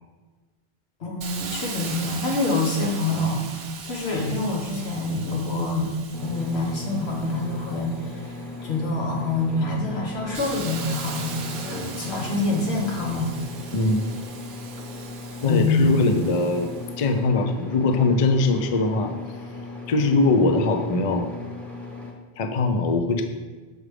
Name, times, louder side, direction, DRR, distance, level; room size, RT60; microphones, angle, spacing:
voice 1, 1.0-5.9 6.2-13.3 15.5-15.9, left 2 dB, 80° left, -1 dB, 1.4 m, -26 dB
Hiss, 1.2-8.8 9.3-17.0, right 5 dB, 70° right, 0.9 m, -40 dB
sound 1, 6.1-22.1, left 3 dB, ahead, 0.7 m, -37 dB
voice 2, 13.7-14.0 15.4-16.7 17.0-19.1 19.9-21.2 22.4-23.2, left 3 dB, 50° left, 5 dB, 0.4 m, -21 dB
6.4 x 4.9 x 3.3 m, 1.3 s
omnidirectional pair, 1.1 m